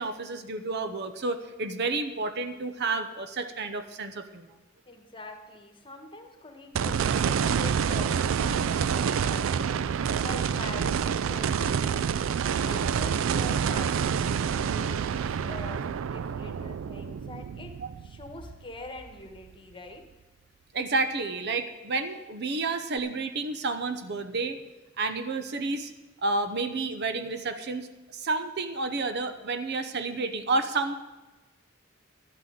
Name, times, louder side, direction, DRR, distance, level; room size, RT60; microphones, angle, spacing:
voice 1, 0.0-4.5 17.8-17.9 20.7-24.6 25.0-25.9 26.2-31.0, right 3 dB, 55° right, 9 dB, 0.8 m, -30 dB
voice 2, 4.9-9.8 10.2-12.2 12.6-17.8 18.0-20.0, left 2 dB, 25° left, 4 dB, 1.4 m, -44 dB
sound 1, 6.7-19.1 19.5-19.6 23.0-23.1, right 7 dB, 70° right, 0.3 m, -28 dB
11.5 x 6.1 x 9.3 m, 1.1 s
head